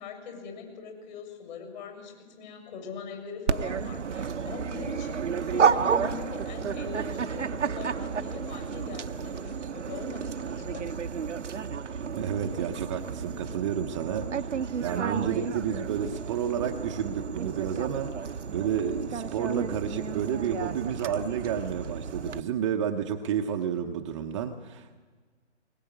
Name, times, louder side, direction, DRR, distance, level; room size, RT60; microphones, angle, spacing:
voice 1, 0.0-11.0, left 6 dB, 40° left, 5 dB, 7.1 m, -41 dB
Dog, 3.5-22.4, right 6 dB, 80° right, 0.9 m, -31 dB
voice 2, 12.2-25.0, right 8 dB, 25° right, 4 dB, 0.8 m, -31 dB
21.0 x 20.5 x 8.3 m, 1.5 s
figure-of-eight pair, 140°, 35 cm